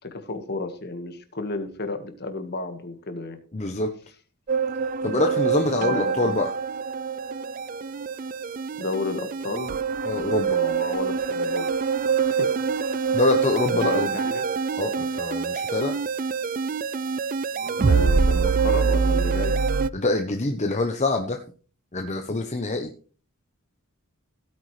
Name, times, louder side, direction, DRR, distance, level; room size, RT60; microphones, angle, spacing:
voice 1, 0.0-3.4 5.8-6.4 8.8-9.8 10.5-11.7 12.1-12.5 13.7-14.5 17.8-19.6, left 3 dB, 50° left, 8 dB, 1.7 m, -32 dB
voice 2, 3.5-3.9 5.0-6.5 10.0-10.6 13.1-14.2 14.8-16.0 19.9-21.4 21.9-22.9, left 2 dB, 30° left, 5 dB, 0.9 m, -25 dB
sound 1, 4.5-19.9, right 5 dB, 40° right, 0.4 m, -25 dB
16.5 x 9.2 x 3.3 m, 0.39 s
head